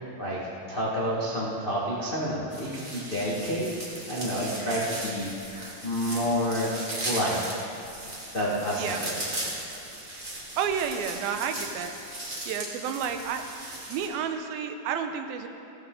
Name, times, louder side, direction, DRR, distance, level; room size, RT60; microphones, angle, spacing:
voice 1, 0.7-3.7 4.1-6.7 7.0-7.5 8.3-9.1, equal, 50° left, -6 dB, 0.6 m, -29 dB
sound 1, 2.5-14.1, right 1 dB, 20° right, 1.5 m, -37 dB
voice 2, 10.6-11.9 12.5-15.5, right 7 dB, 90° right, 7 dB, 2.7 m, -31 dB
16.0 x 14.0 x 3.8 m, 2.6 s
omnidirectional pair, 4.2 m